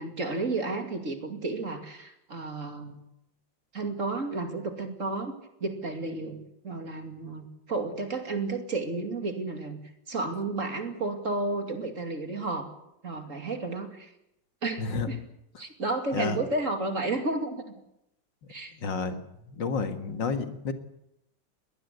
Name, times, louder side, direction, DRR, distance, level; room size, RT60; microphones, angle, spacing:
voice 1, 0.0-3.0 3.7-5.3 5.6-6.4 6.6-9.8 10.1-12.7 13.0-14.1 14.6-15.2 15.6-17.8 18.5-18.7, right 3 dB, 40° right, 5 dB, 2.9 m, -32 dB
voice 2, 18.8-19.2 19.6-20.7, left 4 dB, 75° left, 8 dB, 2.4 m, -30 dB
21.5 x 19.5 x 8.2 m, 0.83 s
omnidirectional pair, 2.0 m